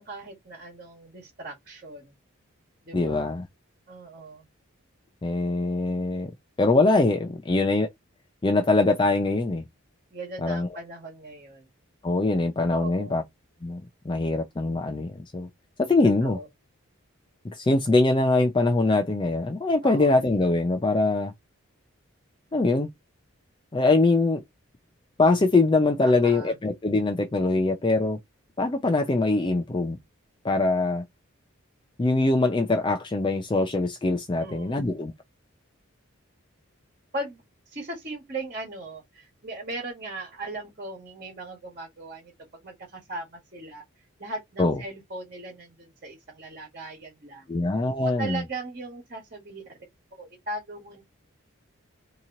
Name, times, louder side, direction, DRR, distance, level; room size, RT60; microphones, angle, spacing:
voice 1, 0.0-2.1 2.8-3.3 3.9-4.5 10.1-11.7 12.7-13.2 16.2-16.5 19.8-20.1 26.0-26.6 34.4-34.8 37.1-43.8 44.2-47.5 48.0-49.6 50.1-51.0, right 2 dB, 40° right, 1.4 m, -38 dB
voice 2, 2.9-3.5 5.2-6.3 6.6-7.9 8.4-9.6 10.4-10.7 12.0-13.2 13.6-13.8 14.1-15.5 15.8-16.4 17.5-21.3 22.5-22.9 23.7-24.4 25.2-28.2 28.6-30.0 30.4-31.0 32.0-35.1 44.6-44.8 47.5-48.4, left 2 dB, 20° left, 0.3 m, -23 dB
2.9 x 2.8 x 3.6 m
head